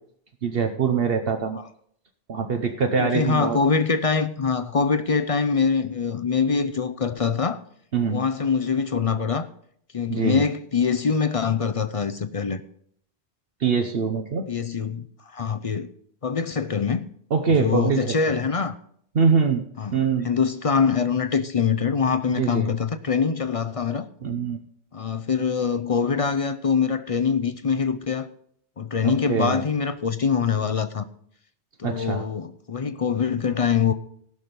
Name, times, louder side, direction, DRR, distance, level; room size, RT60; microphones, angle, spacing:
voice 1, 0.4-1.6 2.3-3.6 7.9-8.2 10.1-10.4 13.6-14.5 17.3-18.2 19.1-19.6 19.9-20.3 22.3-22.7 24.2-24.6 29.0-29.6 31.8-32.2, right 5 dB, 60° right, 1.0 m, -23 dB
voice 2, 3.0-7.6 8.1-9.5 9.9-12.6 14.5-15.9 16.2-17.1 17.5-18.7 19.8-24.1 24.9-28.3 28.8-31.0 31.8-33.9, left 6 dB, 40° left, 0.5 m, -24 dB
16.0 x 6.2 x 5.2 m
omnidirectional pair, 1.2 m